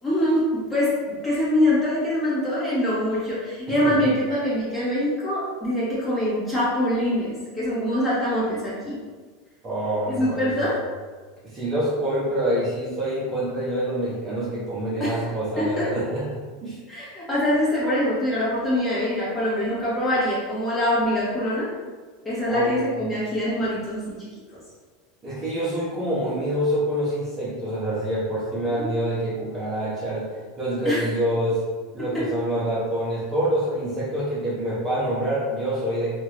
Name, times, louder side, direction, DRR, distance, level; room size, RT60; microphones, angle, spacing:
voice 1, 0.0-9.0 10.1-10.7 15.0-15.2 15.5-15.8 16.9-21.7 22.2-24.2 28.8-28.9 30.8-31.0, left 1 dB, 10° left, -9 dB, 1.2 m, -24 dB
voice 2, 9.6-10.7 11.4-16.3 16.6-16.8 22.5-23.3 25.2-30.3 30.6-31.6 31.9-36.2, right 1 dB, 25° right, -8 dB, 0.9 m, -26 dB
2.9 x 2.6 x 3.0 m, 1.4 s
supercardioid pair, 140°, 0 cm